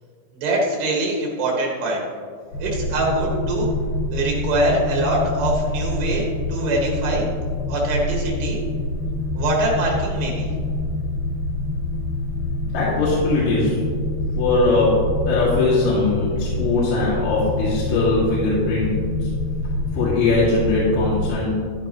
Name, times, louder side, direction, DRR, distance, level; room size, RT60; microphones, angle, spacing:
voice 1, 0.3-2.0 2.6-3.7 4.1-6.2 6.5-7.3 7.7-8.6 9.4-10.5, right 2 dB, 80° right, -2 dB, 3.6 m, -23 dB
sound 1, 2.5-21.3, left 1 dB, 65° left, 3.0 m, -26 dB
voice 2, 12.7-13.8 14.4-18.9 19.2-19.3 19.9-21.6, left 3 dB, 90° left, -7 dB, 4.1 m, -20 dB
12.5 x 11.0 x 3.0 m, 2.1 s
omnidirectional pair, 4.8 m